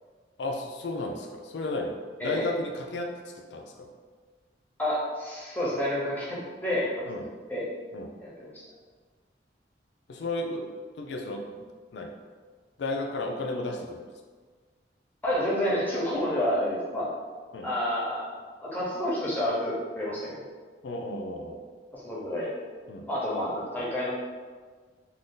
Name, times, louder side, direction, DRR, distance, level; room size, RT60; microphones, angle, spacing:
voice 1, 0.4-3.2 3.5-3.9 7.1-7.2 7.9-8.1 10.1-10.7 11.0-11.5 11.9-12.1 12.8-14.0 17.5-17.7 20.8-21.6 22.9-23.1, left 2 dB, 70° left, 3 dB, 0.4 m, -33 dB
voice 2, 4.8-7.0 7.5-7.7 8.2-8.6 15.2-17.1 17.6-18.3 18.6-20.4 21.9-22.7 23.1-24.1, left 1 dB, 10° left, -7 dB, 0.7 m, -29 dB
2.6 x 2.3 x 3.6 m, 1.5 s
head